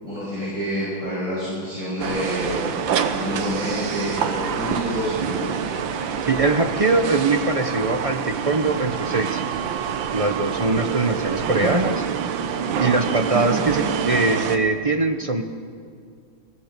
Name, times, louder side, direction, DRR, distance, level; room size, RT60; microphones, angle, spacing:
voice 1, 0.0-2.6 2.9-5.6, equal, 40° right, -9 dB, 7.3 m, -28 dB
sound 1, 2.0-14.6, right 7 dB, 75° right, 1.8 m, -26 dB
voice 2, 6.2-9.4 10.1-12.0 12.8-15.4, right 3 dB, 55° right, 6 dB, 0.3 m, -22 dB
22.5 x 18.0 x 6.8 m, 2.2 s
omnidirectional pair, 2.1 m